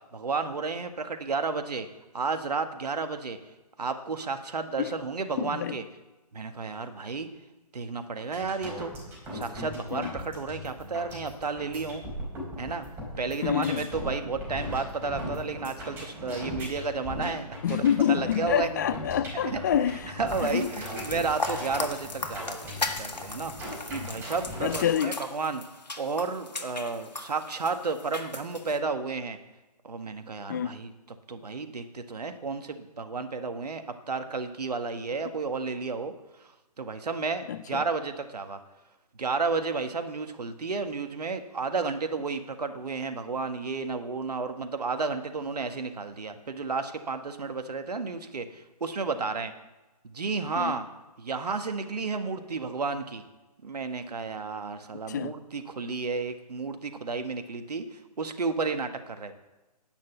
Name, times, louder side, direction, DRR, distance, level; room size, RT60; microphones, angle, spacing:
voice 1, 0.1-1.9 2.1-3.4 3.8-5.8 6.3-7.3 7.7-8.9 9.3-12.0 12.6-12.8 13.2-18.8 19.4-19.6 20.2-23.5 23.9-25.6 26.0-29.4 29.8-30.9 31.3-36.1 36.8-38.6 39.2-49.5 50.1-50.9 51.2-53.2 53.6-59.3, right 4 dB, 70° right, 1.5 m, -32 dB
voice 2, 5.4-5.8 9.9-10.1 13.4-13.9 17.6-20.6 24.6-25.2 30.5-30.8 37.5-37.9 50.5-50.7 55.1-55.3, left 9 dB, 25° left, 0.5 m, -27 dB
sound 1, 8.3-24.9, equal, 10° right, 4.5 m, -39 dB
sound 2, 20.3-28.8, left 3 dB, 85° left, 1.7 m, -38 dB
10.5 x 9.3 x 7.2 m
figure-of-eight pair, 145°, 21 cm